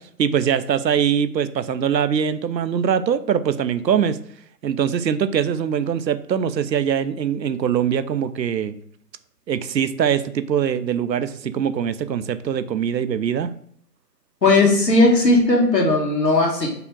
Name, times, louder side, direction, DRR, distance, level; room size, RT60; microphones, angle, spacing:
voice 1, 0.0-4.2 4.6-8.7 9.5-13.5, right 8 dB, 85° right, 13 dB, 0.6 m, -22 dB
voice 2, 14.4-16.7, left 2 dB, 80° left, -1 dB, 1.8 m, -16 dB
4.8 x 2.4 x 4.6 m, 0.64 s
figure-of-eight pair, 150°, 50 cm